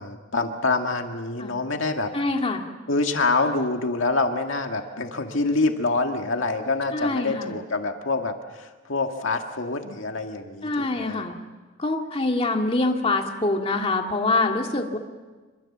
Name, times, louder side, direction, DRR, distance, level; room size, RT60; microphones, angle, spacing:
voice 1, 0.0-2.1 2.9-11.2, left 3 dB, 70° left, 4 dB, 1.9 m, -26 dB
voice 2, 2.1-2.6 6.9-7.5 10.6-11.4 11.8-15.0, left 2 dB, 30° left, 2 dB, 2.2 m, -25 dB
26.5 x 25.0 x 7.4 m, 1.3 s
head